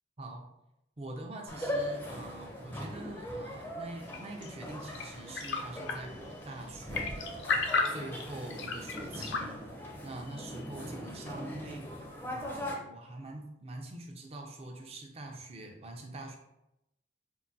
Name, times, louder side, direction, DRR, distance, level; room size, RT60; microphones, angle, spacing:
voice 1, 1.0-9.6 10.0-11.9 12.3-16.4, right 2 dB, 35° right, 1 dB, 0.5 m, -44 dB
sound 1, 1.5-12.7, equal, 10° left, 0.5 m, -40 dB
sound 2, 4.0-9.4, left 4 dB, 70° left, 0.4 m, -36 dB
4.6 x 2.2 x 2.6 m, 0.86 s
head